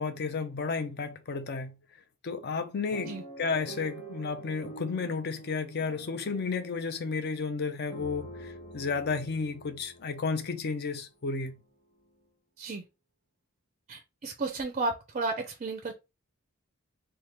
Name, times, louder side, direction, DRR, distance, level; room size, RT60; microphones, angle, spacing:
voice 1, 0.0-1.8 2.2-11.6, left 4 dB, 50° left, 0.5 m, -32 dB
sound 1, 2.9-11.0 11.6-11.7 12.0-12.2, right 1 dB, 30° left, 1.1 m, -47 dB
voice 2, 13.9-15.9, right 3 dB, 35° right, 0.4 m, -33 dB
3.4 x 2.1 x 2.9 m
head